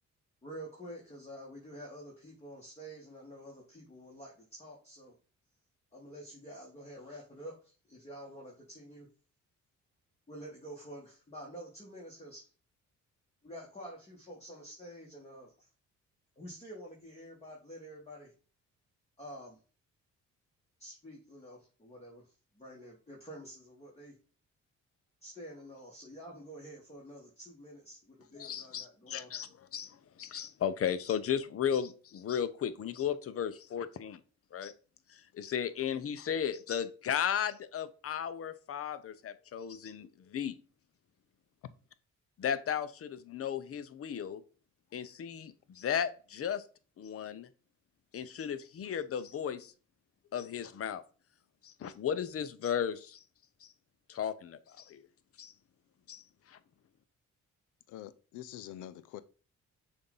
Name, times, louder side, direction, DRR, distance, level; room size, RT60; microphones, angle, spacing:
voice 1, 0.4-5.1 5.9-9.1 10.3-12.5 13.4-15.7 16.4-18.3 19.2-19.6 20.8-22.3 22.5-24.1 25.2-29.3, equal, 20° left, 1.7 m, -48 dB
voice 2, 28.3-34.2 34.5-34.7 35.1-40.6 42.4-44.4 44.9-46.6 47.0-47.5 48.1-49.7 50.3-51.0 51.6-53.2 53.6-53.7 54.1-55.0 55.4-55.5 56.1-56.6, left 8 dB, 50° left, 0.7 m, -35 dB
voice 3, 57.9-59.2, left 12 dB, 85° left, 0.6 m, -45 dB
6.8 x 2.7 x 5.4 m
cardioid pair, 90°, 30 cm